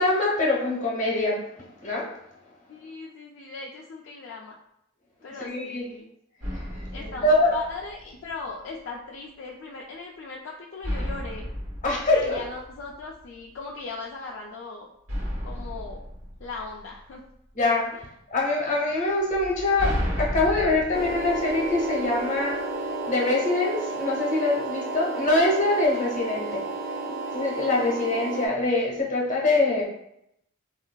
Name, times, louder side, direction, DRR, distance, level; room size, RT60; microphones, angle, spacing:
voice 1, 0.0-1.4 1.8-2.1 5.4-5.8 6.5-6.6 7.0-7.5 11.8-12.4 17.5-17.9 18.3-22.6 23.1-26.6 27.3-29.9, left 2 dB, 35° left, -2 dB, 0.8 m, -24 dB
voice 2, 2.7-4.6 5.2-6.1 6.9-11.5 12.1-14.9 15.4-16.0 16.4-17.2 17.9-18.1, left 4 dB, 60° left, -1 dB, 0.3 m, -38 dB
sound 1, 6.4-8.3 10.8-13.2 15.1-17.3 19.3-22.4, equal, 90° right, 1.1 m, -33 dB
sound 2, 20.9-28.5, right 2 dB, 50° right, 0.5 m, -32 dB
3.5 x 2.3 x 2.2 m, 0.77 s
head